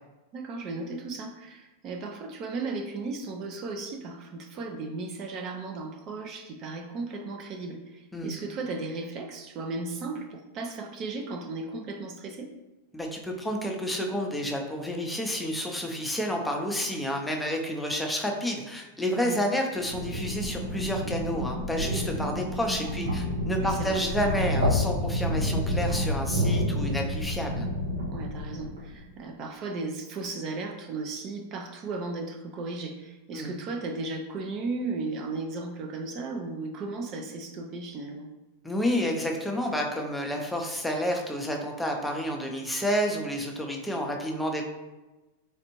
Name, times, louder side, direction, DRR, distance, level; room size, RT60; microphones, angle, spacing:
voice 1, 0.3-12.5 19.2-19.4 23.6-24.0 28.1-38.3, right 3 dB, 40° right, 4 dB, 0.4 m, -35 dB
voice 2, 12.9-27.7 33.3-33.5 38.6-44.6, equal, 5° left, 1 dB, 0.6 m, -30 dB
sound 1, 19.7-28.9, left 1 dB, 85° right, 1.0 m, -29 dB
4.4 x 2.4 x 3.0 m, 1.1 s
hypercardioid pair, 105°, 0 cm